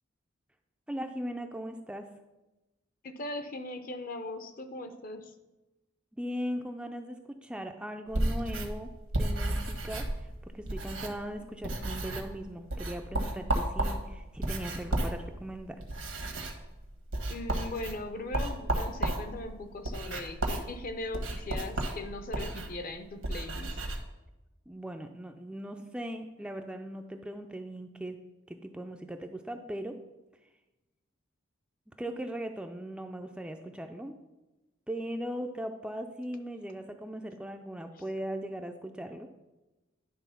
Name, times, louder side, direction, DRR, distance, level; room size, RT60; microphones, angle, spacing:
voice 1, 0.9-2.1 6.1-8.9 9.2-15.8 24.7-28.2 28.5-30.0 31.9-34.2 34.9-39.3, equal, 5° right, 5 dB, 0.4 m, -39 dB
voice 2, 3.0-5.3 17.3-24.0, left 2 dB, 45° left, 8 dB, 0.7 m, -39 dB
sound 1, 8.1-11.3 11.6-12.4 12.7-24.0, right 1 dB, 85° right, 1.3 m, -33 dB
10.5 x 3.7 x 5.6 m, 1.0 s
head